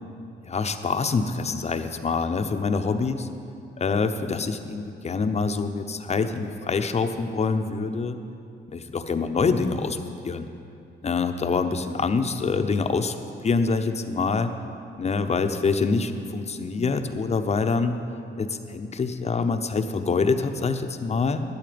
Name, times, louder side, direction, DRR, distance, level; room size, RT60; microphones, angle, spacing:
voice 1, 0.4-3.3 3.8-8.2 8.7-10.0 10.2-10.4 11.0-13.2 13.4-14.5 15.0-18.0 18.4-21.4, left 4 dB, 35° left, 8 dB, 0.8 m, -25 dB
11.5 x 11.0 x 5.2 m, 2.6 s
cardioid pair, 90°, 20 cm